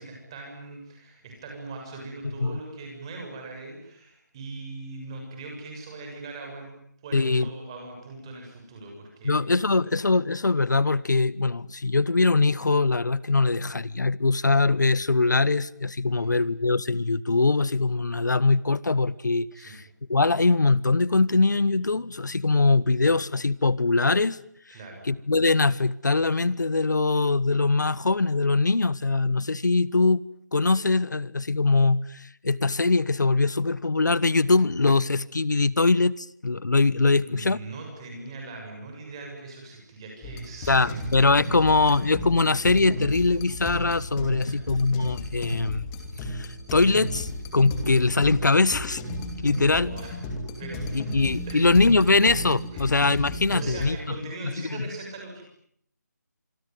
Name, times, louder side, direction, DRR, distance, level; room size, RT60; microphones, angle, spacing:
voice 1, 0.0-6.7 7.0-9.3 9.7-10.0 16.1-16.4 19.6-19.8 24.7-25.1 37.1-41.1 44.3-44.7 49.8-50.2 50.6-51.2 51.5-51.7 52.7-52.9 53.5-55.4, right 3 dB, 15° right, 7.1 m, -40 dB
voice 2, 7.1-7.5 9.2-24.4 24.7-24.8 25.0-30.2 30.5-37.6 40.7-45.8 46.2-49.0 49.4-49.9 50.9-54.1 54.4-54.8, left 3 dB, 85° left, 1.2 m, -22 dB
sound 1, 40.2-53.9, left 1 dB, 10° left, 2.8 m, -34 dB
26.5 x 24.0 x 9.4 m
figure-of-eight pair, 175°, 10 cm